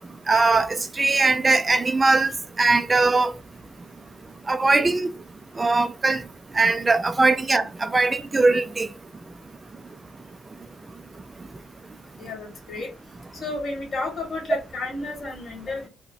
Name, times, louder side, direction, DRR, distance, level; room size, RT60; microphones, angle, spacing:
voice 1, 0.3-2.3 2.6-3.3 4.5-5.1 5.6-6.2 6.5-8.9, right 3 dB, 25° right, 0.3 m, -20 dB
voice 2, 12.2-12.9 13.3-15.9, left 2 dB, 45° left, 1.9 m, -32 dB
4.6 x 2.1 x 2.7 m
cardioid pair, 90°, 0 cm